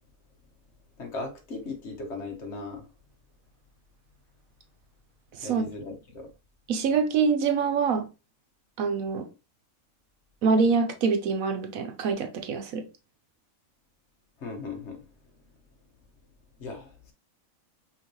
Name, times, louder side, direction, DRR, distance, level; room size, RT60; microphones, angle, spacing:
voice 1, 1.0-2.8 5.4-6.3 14.4-15.1 16.6-17.1, left 3 dB, 55° left, 1.2 m, -37 dB
voice 2, 5.3-5.7 6.7-8.1 8.8-9.3 10.4-12.8, right 5 dB, 75° right, 1.2 m, -25 dB
5.7 x 3.0 x 3.0 m
omnidirectional pair, 1.5 m